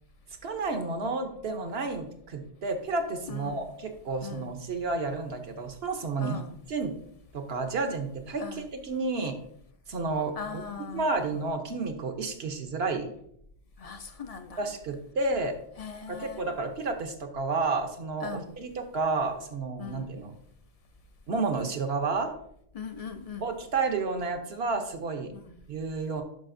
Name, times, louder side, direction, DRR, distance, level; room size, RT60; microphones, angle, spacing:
voice 1, 0.4-6.4 6.7-6.9 7.3-9.4 9.9-10.3 10.9-13.1 14.6-15.6 16.1-20.3 21.3-22.3 23.4-25.3 25.7-26.2, right 3 dB, 70° right, 1.1 m, -31 dB
voice 2, 3.3-3.6 4.2-4.5 6.2-6.6 8.4-8.7 10.3-11.4 13.8-14.7 15.8-16.4 18.2-18.5 19.8-20.1 22.7-23.5 25.3-25.6, left 6 dB, 45° left, 0.5 m, -40 dB
9.0 x 6.1 x 2.6 m
omnidirectional pair, 1.1 m